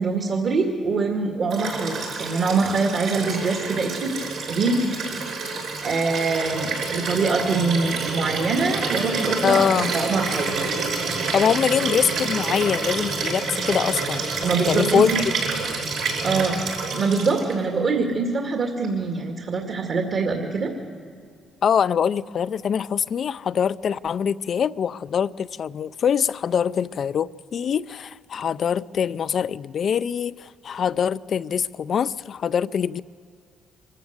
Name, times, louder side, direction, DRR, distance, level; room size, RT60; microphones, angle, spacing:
voice 1, 0.0-4.2 4.5-5.0 5.8-10.6 14.4-15.2 16.2-16.6 16.9-20.7, right 4 dB, 60° right, 2.2 m, -24 dB
Liquid, 1.5-17.5 18.8-18.9, right 4 dB, 85° right, 7.0 m, -28 dB
voice 2, 9.4-9.9 11.3-14.3 14.7-15.1 21.6-33.0, left 7 dB, 55° left, 0.4 m, -23 dB
24.5 x 14.5 x 8.0 m
cardioid pair, 90°, 0 cm